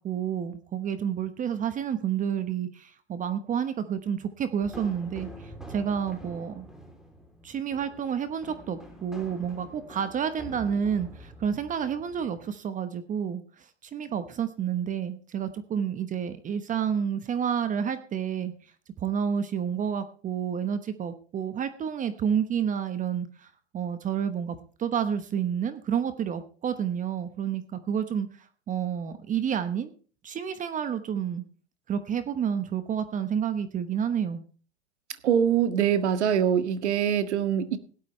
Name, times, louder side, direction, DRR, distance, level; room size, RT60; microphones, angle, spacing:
voice 1, 0.0-6.7 7.4-18.5 19.0-28.3 28.7-29.9 30.2-31.4 31.9-34.4, right 8 dB, 25° right, 12 dB, 1.1 m, -30 dB
sound 1, 4.6-12.4, equal, ahead, 3.2 m, -46 dB
voice 2, 35.2-37.8, right 8 dB, 75° right, 11 dB, 1.8 m, -23 dB
17.0 x 12.0 x 3.2 m, 0.41 s
hypercardioid pair, 120°, 34 cm